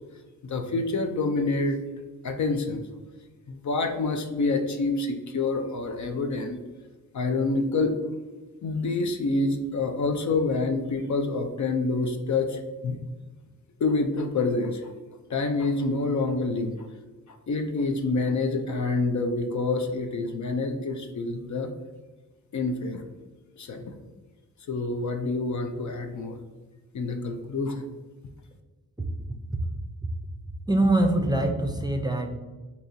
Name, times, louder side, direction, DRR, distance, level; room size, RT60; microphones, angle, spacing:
voice 1, 0.4-1.8 2.2-2.9 3.5-6.6 7.1-8.0 8.6-13.0 13.8-14.9 15.3-16.9 17.3-21.7 22.5-23.0 23.6-23.9 24.7-26.4 26.9-27.8, left 3 dB, 55° left, 6 dB, 0.5 m, -27 dB
voice 2, 30.7-32.3, right 1 dB, 10° right, 3 dB, 0.5 m, -23 dB
4.0 x 2.8 x 2.6 m, 1.2 s
cardioid pair, 50°, 36 cm